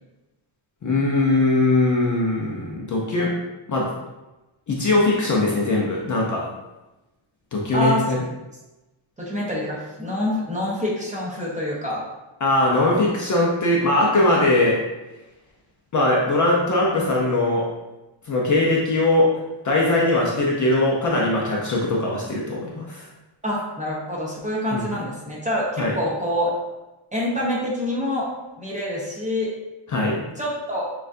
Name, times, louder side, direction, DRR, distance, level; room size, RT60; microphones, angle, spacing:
voice 1, 0.8-3.3 3.7-3.9 4.7-6.5 7.5-8.2 12.4-14.8 15.9-17.6 18.3-19.3 19.6-23.1 24.7-24.8 25.8-26.0 29.9-30.2, left 2 dB, 40° left, -2 dB, 0.5 m, -20 dB
voice 2, 9.2-12.0 23.4-26.5 27.1-28.3 28.6-29.5 30.4-30.8, left 1 dB, 15° right, -5 dB, 0.8 m, -26 dB
6.4 x 2.4 x 2.5 m, 1.1 s
wide cardioid pair, 175°, 49 cm